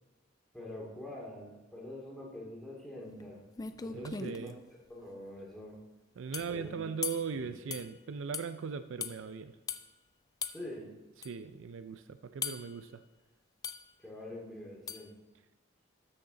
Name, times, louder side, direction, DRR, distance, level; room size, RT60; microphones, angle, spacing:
voice 1, 0.5-3.4 3.8-4.5 4.9-5.8 6.3-6.8 7.3-7.4 10.5-10.9 14.0-15.1, left 1 dB, ahead, -4 dB, 2.3 m, -45 dB
sound 1, 3.2-3.3 3.6-4.5 6.3-6.6 7.0-7.3 7.7-7.9 8.3-8.5 9.0-9.2 9.7-9.8 10.4-10.6 11.2-11.3 12.4-12.7 13.6-13.9 14.9-15.1, left 6 dB, 20° left, 0.3 m, -38 dB
voice 2, 3.9-4.5 6.2-9.6 11.2-13.0, right 6 dB, 70° right, 11 dB, 0.4 m, -39 dB
13.0 x 6.5 x 3.9 m, 1.1 s
head